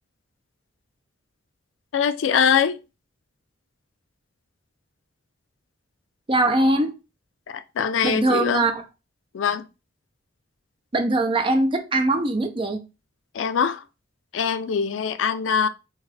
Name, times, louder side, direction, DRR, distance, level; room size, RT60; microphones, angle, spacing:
voice 1, 1.9-2.8 7.5-8.7 9.3-9.6 13.3-13.8 14.3-15.7, left 7 dB, 80° left, 0.4 m, -23 dB
voice 2, 6.3-6.9 8.0-8.8 10.9-12.8, right 2 dB, 25° right, 0.6 m, -21 dB
4.7 x 2.5 x 3.2 m
head